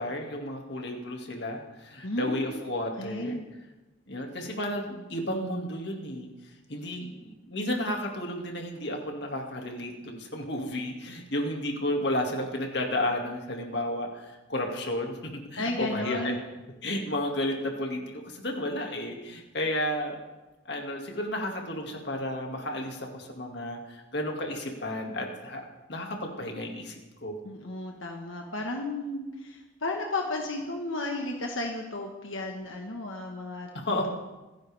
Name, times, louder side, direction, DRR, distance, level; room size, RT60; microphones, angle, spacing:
voice 1, 0.0-3.4 4.1-6.3 6.7-16.3 16.8-20.2 20.7-27.4 33.7-34.1, left 1 dB, 55° left, 1 dB, 2.3 m, -32 dB
voice 2, 2.0-2.4 3.0-3.5 15.6-16.4 27.4-34.1, left 2 dB, 80° left, 1 dB, 1.5 m, -33 dB
27.0 x 10.5 x 3.6 m, 1.1 s
head